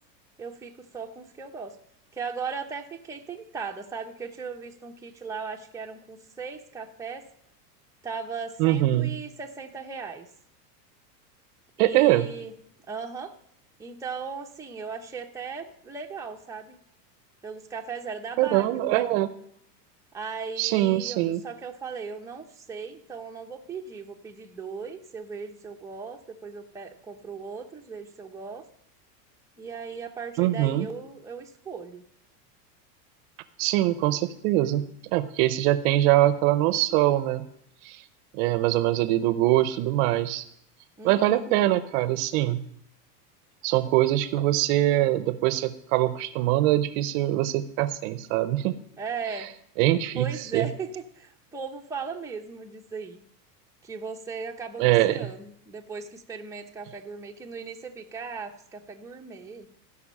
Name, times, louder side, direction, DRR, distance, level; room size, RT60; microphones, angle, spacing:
voice 1, 0.4-1.7 2.1-7.2 8.0-10.3 11.8-12.5 12.9-13.3 13.8-16.8 17.4-19.0 20.1-28.6 29.6-32.0 41.0-41.5 49.0-49.5 50.2-50.9 51.2-53.2 53.8-59.7, right 5 dB, 5° right, 1 dB, 0.9 m, -37 dB
voice 2, 8.6-9.2 11.8-12.3 18.4-19.3 20.6-21.4 30.4-30.9 33.6-37.5 37.8-38.0 38.3-40.4 41.0-42.6 43.6-48.8 49.3-49.4 49.8-50.2 50.5-50.7 54.8-55.3, right 15 dB, 55° right, 14 dB, 0.8 m, -23 dB
15.5 x 5.5 x 5.4 m, 0.74 s
supercardioid pair, 120°, 49 cm